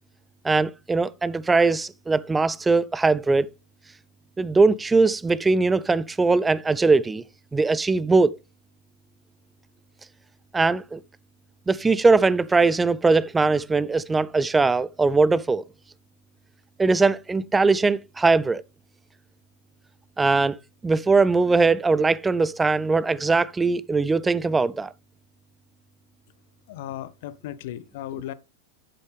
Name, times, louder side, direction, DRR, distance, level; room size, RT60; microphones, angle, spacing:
voice 1, 0.4-3.5 4.4-7.2 7.5-8.3 10.5-11.0 11.7-15.6 16.8-18.6 20.2-20.6 20.8-24.9, right 3 dB, 10° right, 0.4 m, -20 dB
voice 2, 26.7-28.3, left 12 dB, 50° left, 0.7 m, -36 dB
10.0 x 8.2 x 3.3 m
figure-of-eight pair, 90°, 0 cm